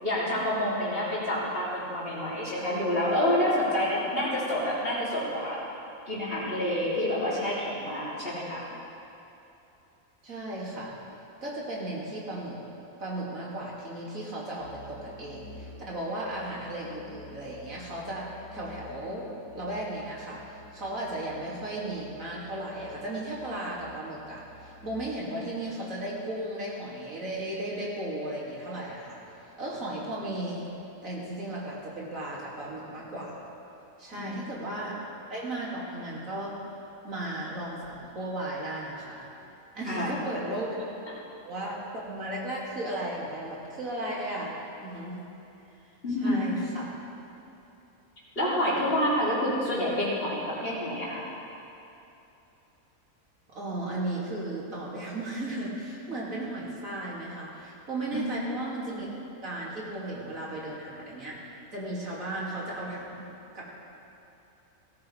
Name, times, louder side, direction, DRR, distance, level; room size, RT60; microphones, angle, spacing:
voice 1, 0.0-5.6 6.1-8.6 34.2-34.4 39.8-40.1 46.0-46.5 48.4-51.2 58.1-58.4, left 1 dB, 40° left, -8 dB, 3.6 m, -28 dB
voice 2, 10.2-11.0 11.4-12.6 13.0-30.7 31.0-33.5 34.0-35.0 35.3-36.5 37.0-39.3 39.7-40.9 41.4-44.5 44.8-45.2 46.2-47.0 53.5-61.4 61.7-63.3 63.5-63.6, right 1 dB, 70° right, -5 dB, 3.1 m, -35 dB
Musical instrument, 14.6-25.4, left 1 dB, 80° left, 2.4 m, -50 dB
17.0 x 14.5 x 3.5 m, 2.9 s
omnidirectional pair, 1.5 m